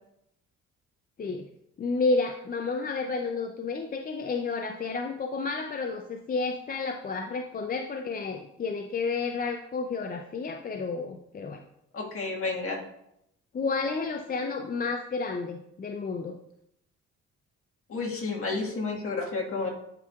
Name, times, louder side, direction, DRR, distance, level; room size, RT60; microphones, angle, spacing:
voice 1, 1.8-11.6 13.5-16.4, left 4 dB, 30° left, 4 dB, 0.5 m, -31 dB
voice 2, 11.9-12.8 17.9-19.7, left 3 dB, 45° left, -1 dB, 1.6 m, -31 dB
10.5 x 4.5 x 2.4 m, 0.79 s
cardioid pair, 90°, 30 cm